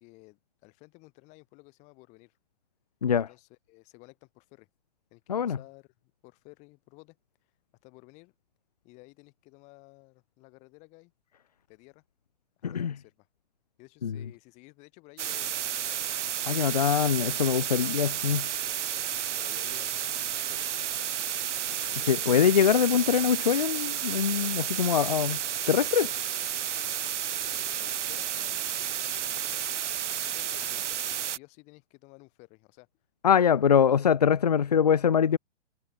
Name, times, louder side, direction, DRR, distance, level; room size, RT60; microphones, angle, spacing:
voice 1, 0.0-2.4 3.3-4.7 5.1-5.9 6.2-7.2 7.8-8.3 8.8-11.1 11.7-12.0 12.7-13.3 13.8-15.8 17.5-17.9 19.1-20.7 21.8-22.5 27.4-29.7 30.2-32.9 33.5-34.0, left 26 dB, 20° left, 4.9 m, -54 dB
voice 2, 12.6-13.0 14.0-14.2 16.4-18.5 22.1-25.4 25.7-26.1 33.2-35.4, left 7 dB, 35° left, 0.4 m, -23 dB
sound 1, 15.2-31.4, right 10 dB, 75° right, 1.3 m, -32 dB
hypercardioid pair, 180°, 36 cm